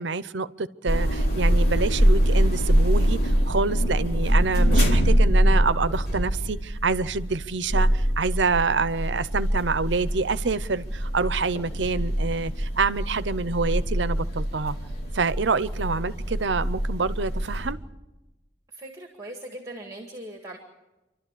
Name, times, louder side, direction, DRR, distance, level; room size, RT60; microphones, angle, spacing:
voice 1, 0.0-14.8 15.1-17.8, right 4 dB, 70° right, 15 dB, 0.7 m, -27 dB
sound 1, 0.9-17.7, equal, 50° left, 3.8 m, -24 dB
voice 2, 18.7-20.6, right 1 dB, 20° right, 3 dB, 2.0 m, -39 dB
28.5 x 12.5 x 8.4 m, 1.0 s
head